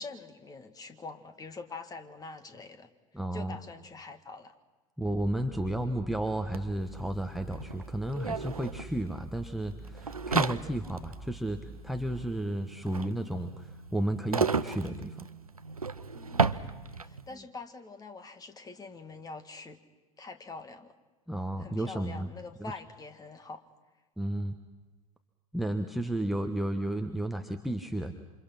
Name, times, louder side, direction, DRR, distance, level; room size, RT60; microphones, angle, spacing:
voice 1, 0.0-2.9 3.3-4.5 16.1-19.8 20.2-20.9 21.6-23.6, left 3 dB, 20° left, 8 dB, 2.1 m, -45 dB
voice 2, 3.1-3.6 5.0-15.2 21.3-22.3 24.2-24.6 25.5-28.2, right 1 dB, ahead, 8 dB, 1.3 m, -33 dB
sound 1, 5.0-12.4, right 2 dB, 25° right, 1.1 m, -47 dB
sound 2, 6.5-6.6 6.8-17.3, right 4 dB, 85° right, 0.7 m, -34 dB
28.0 x 27.0 x 5.9 m, 1.2 s
figure-of-eight pair, 80°, 18 cm